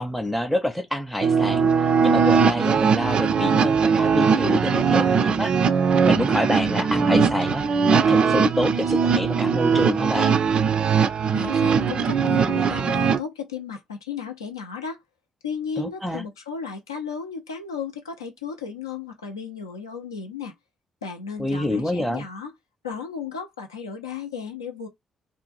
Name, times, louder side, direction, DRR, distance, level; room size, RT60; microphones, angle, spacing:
voice 1, 0.0-1.7 2.0-5.5 6.0-7.6 7.9-10.4 15.8-16.2 21.4-22.2, left 1 dB, ahead, 0.5 m, -27 dB
sound 1, 1.2-13.2, right 6 dB, 50° right, 0.3 m, -20 dB
voice 2, 11.3-15.0 15.4-20.5 21.0-22.5 22.8-24.9, left 6 dB, 85° left, 0.5 m, -34 dB
2.6 x 2.2 x 2.9 m
figure-of-eight pair, 40°, 2 cm